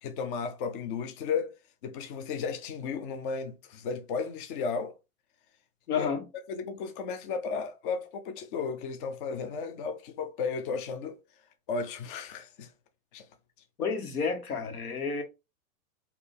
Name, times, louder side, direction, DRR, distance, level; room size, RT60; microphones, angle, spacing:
voice 1, 0.0-1.6 1.8-4.9 6.0-6.1 6.5-11.2 11.7-12.7 13.1-13.3, left 5 dB, 35° left, 0.6 m, -34 dB
voice 2, 5.9-6.2 13.8-15.2, left 5 dB, 85° left, 1.6 m, -30 dB
4.2 x 2.8 x 3.4 m
hypercardioid pair, 150°, 44 cm